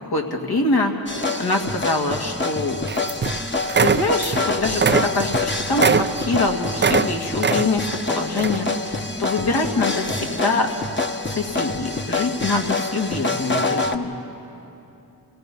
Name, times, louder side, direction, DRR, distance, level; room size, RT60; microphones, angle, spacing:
voice 1, 0.1-0.9 1.4-2.8 3.8-10.7 11.3-14.1, left 3 dB, 65° left, 2 dB, 2.1 m, -24 dB
sound 1, 1.1-14.0, left 3 dB, 30° left, 1.2 m, -26 dB
sound 2, 2.9-3.4 3.7-4.4 4.7-7.1 7.4-7.9 8.4-8.6, right 5 dB, 30° right, 0.5 m, -21 dB
29.5 x 17.0 x 5.4 m, 2.9 s
cardioid pair, 55°, 40 cm